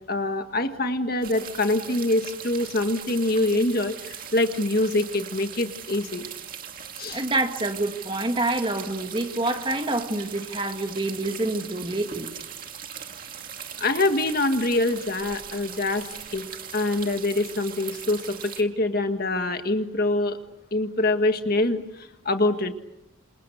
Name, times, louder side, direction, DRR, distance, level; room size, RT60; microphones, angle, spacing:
voice 1, 0.1-6.2 7.0-7.2 13.8-16.4 16.7-20.4 20.7-22.7, left 2 dB, 45° left, 1.8 m, -25 dB
sound 1, 1.2-18.6, right 8 dB, 45° right, 2.2 m, -40 dB
voice 2, 7.1-12.3, right 2 dB, 25° right, 2.1 m, -27 dB
28.0 x 28.0 x 6.6 m
head